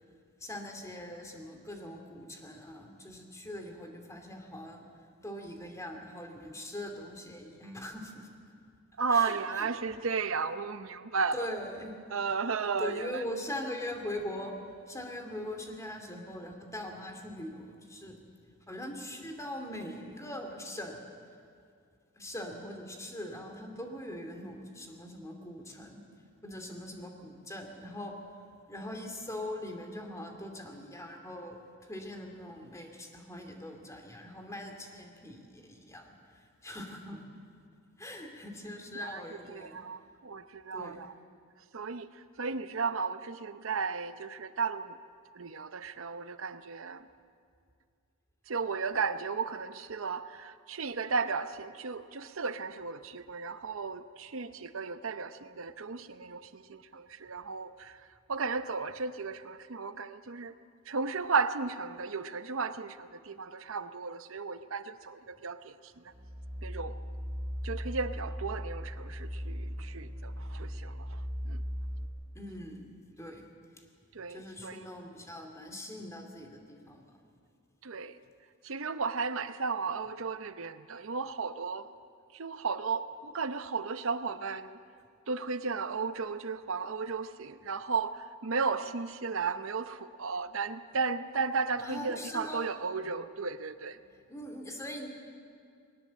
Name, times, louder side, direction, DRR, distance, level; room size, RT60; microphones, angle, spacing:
voice 1, 0.4-4.9 5.2-8.3 9.1-9.7 11.3-11.9 12.8-14.5 14.9-18.2 18.7-21.0 22.1-26.0 26.4-28.2 28.7-37.3 38.0-39.8 40.7-41.0 72.3-73.5 74.3-77.1 91.8-92.7 94.3-95.1, left 1 dB, 15° left, 3 dB, 2.5 m, -41 dB
voice 2, 9.0-11.5 12.1-13.2 39.0-41.1 41.7-45.0 45.3-47.1 48.5-60.5 60.9-66.1 66.6-67.0 67.6-71.6 74.1-74.9 77.8-78.2 78.6-81.9 82.3-84.8 85.3-94.0, right 5 dB, 65° right, 11 dB, 0.8 m, -34 dB
sound 1, 66.1-72.1, equal, 30° right, 2.6 m, -38 dB
21.0 x 18.5 x 7.5 m, 2.3 s
head